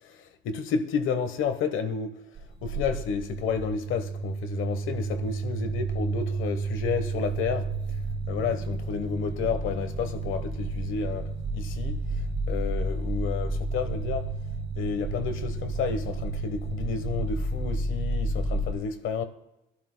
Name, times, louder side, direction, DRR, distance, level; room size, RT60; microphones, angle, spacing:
voice 1, 0.0-2.1 2.6-7.7 8.3-12.0 12.5-14.3 14.7-19.2, left 6 dB, 85° left, 1.2 m, -31 dB
sound 1, 2.4-18.7, right 3 dB, 65° right, 2.7 m, -31 dB
24.5 x 12.0 x 2.2 m
cardioid pair, 90°, 20 cm